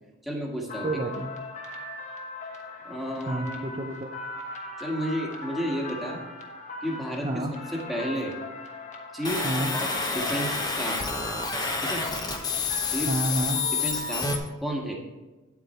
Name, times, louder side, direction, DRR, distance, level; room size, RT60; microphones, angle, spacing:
voice 1, 0.2-0.9 2.8-3.8 4.8-6.2 6.8-8.3 9.1-9.4 9.7-11.0 11.8-12.0 12.9-13.1 13.7-14.3 14.6-15.0, equal, ahead, -2 dB, 1.6 m, -32 dB
sound 1, 0.7-14.4, left 2 dB, 35° left, 1.2 m, -39 dB
voice 2, 0.8-1.3 3.3-4.1 7.2-7.5 9.4-9.7 13.1-13.6, right 1 dB, 25° right, 1 dB, 0.6 m, -29 dB
sound 2, 9.2-14.4, left 4 dB, 20° left, 1.0 m, -29 dB
9.6 x 8.2 x 4.3 m, 1.1 s
head